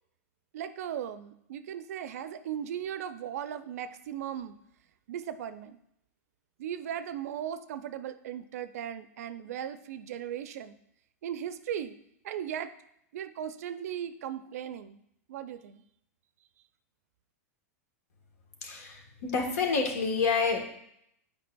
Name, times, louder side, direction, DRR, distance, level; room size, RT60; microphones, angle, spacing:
voice 1, 0.5-4.6 5.1-5.8 6.6-10.8 11.2-12.0 12.2-12.7 13.1-15.0 15.3-15.8, right 9 dB, 70° right, 12 dB, 0.5 m, -37 dB
voice 2, 18.6-20.7, left 5 dB, 70° left, 3 dB, 1.3 m, -28 dB
8.5 x 4.9 x 2.3 m, 0.75 s
hypercardioid pair, 110°, 8 cm